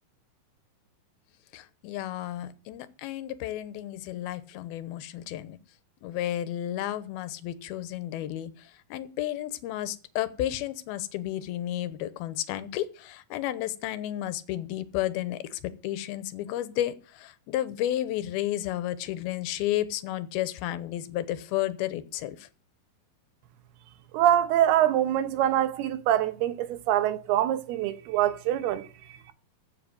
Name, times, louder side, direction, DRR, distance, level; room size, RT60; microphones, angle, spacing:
voice 1, 1.5-5.6 6.0-22.5, left 13 dB, 85° left, 2.8 m, -32 dB
voice 2, 24.1-29.3, right 12 dB, 90° right, 3.0 m, -25 dB
15.0 x 5.3 x 7.7 m
omnidirectional pair, 4.4 m